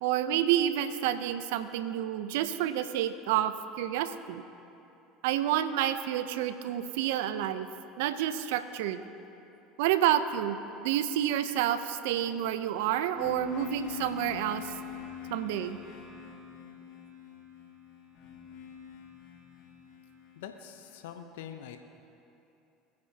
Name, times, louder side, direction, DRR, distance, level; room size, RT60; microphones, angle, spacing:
voice 1, 0.0-4.4 5.2-7.7 8.0-9.0 9.8-10.6 10.8-14.7 15.3-15.8, right 11 dB, 75° right, 11 dB, 0.6 m, -29 dB
sound 1, 13.1-21.0, left 8 dB, 55° left, 2.2 m, -44 dB
voice 2, 20.3-21.8, left 9 dB, 75° left, 6 dB, 0.8 m, -44 dB
22.0 x 9.6 x 2.9 m, 2.9 s
hypercardioid pair, 75°, 0 cm